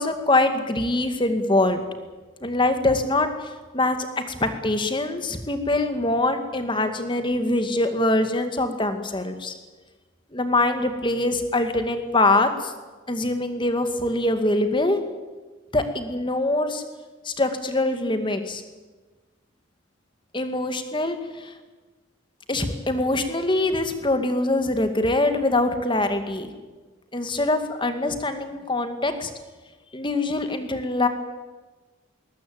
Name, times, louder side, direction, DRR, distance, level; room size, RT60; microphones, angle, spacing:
voice 1, 0.0-1.8 2.4-4.0 4.3-9.5 10.3-12.7 13.1-15.0 15.7-16.8 17.2-18.6 20.3-21.5 22.5-26.5 27.1-29.3 29.9-31.1, left 2 dB, 25° left, 8 dB, 2.1 m, -23 dB
20.5 x 20.0 x 8.8 m, 1.3 s
head